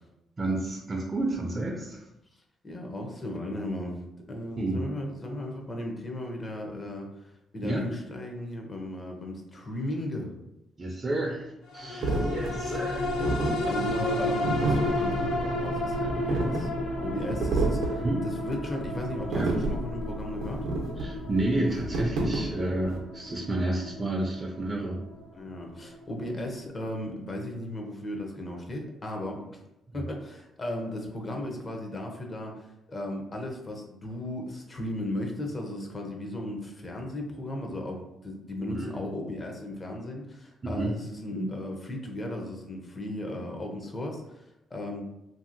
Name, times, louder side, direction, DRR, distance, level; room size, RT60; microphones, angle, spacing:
voice 1, 0.4-2.0 4.6-4.8 7.6-7.8 10.8-13.3 18.0-18.2 19.3-19.5 21.0-25.0 29.9-30.1 38.7-38.9 40.6-40.9 41.3-41.5, right 2 dB, 30° right, 0 dB, 0.4 m, -30 dB
voice 2, 2.6-10.3 12.0-12.8 13.6-16.7 17.0-20.7 25.3-29.6 29.9-32.5 32.9-45.0, left 1 dB, 30° left, 1 dB, 0.6 m, -36 dB
sound 1, 11.7-26.4 26.8-26.9, left 1 dB, 75° left, 0.5 m, -33 dB
sound 2, 12.0-23.0, right 2 dB, 80° right, 0.6 m, -30 dB
2.7 x 2.7 x 2.6 m, 0.91 s
cardioid pair, 90°, 0 cm